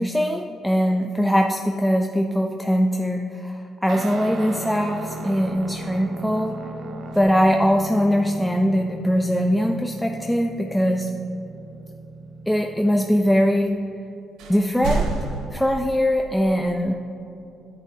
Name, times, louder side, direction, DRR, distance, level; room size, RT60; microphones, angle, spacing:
voice 1, 0.0-6.6 7.2-11.1 12.5-13.7 14.5-15.1 15.5-16.9, equal, 5° left, 2 dB, 0.4 m, -21 dB
Guitar, 3.9-13.6, right 2 dB, 60° right, 0.6 m, -37 dB
sound 1, 5.5-6.2 7.0-8.0 11.5-11.6 13.6-13.7 14.4-15.5, right 3 dB, 90° right, 0.8 m, -30 dB
9.5 x 8.3 x 2.8 m, 2.9 s
cardioid pair, 90°, 0 cm